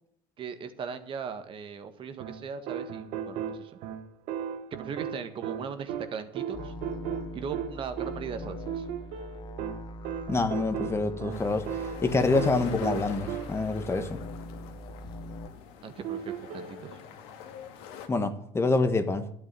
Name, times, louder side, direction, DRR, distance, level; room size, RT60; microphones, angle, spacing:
voice 1, 0.4-3.8 4.7-6.7 7.3-8.9 15.8-17.0, right 6 dB, 45° right, 9 dB, 1.7 m, -39 dB
sound 1, 2.2-13.8 16.0-16.9, right 8 dB, 65° right, 1.5 m, -37 dB
sound 2, 6.5-15.5, left 1 dB, 35° left, 1.4 m, -42 dB
voice 2, 10.3-11.6 12.0-14.2 18.1-19.2, left 3 dB, 20° left, 9 dB, 1.6 m, -26 dB
sound 3, 11.3-18.1, left 8 dB, 85° left, 2.3 m, -43 dB
12.0 x 8.9 x 7.6 m, 0.67 s
supercardioid pair, 110°, 13 cm